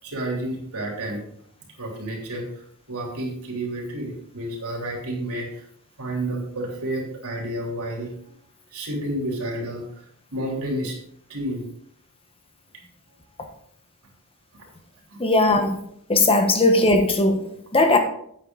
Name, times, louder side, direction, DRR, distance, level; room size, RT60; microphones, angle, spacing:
voice 1, 0.0-1.2 1.8-5.7 6.0-8.3 8.7-9.8 10.3-10.9 11.3-11.7 15.1-15.2, right 1 dB, 85° right, -1 dB, 3.6 m, -30 dB
voice 2, 15.2-15.8 16.1-18.0, left 2 dB, 25° left, 6 dB, 1.2 m, -18 dB
9.2 x 9.1 x 4.0 m, 0.69 s
head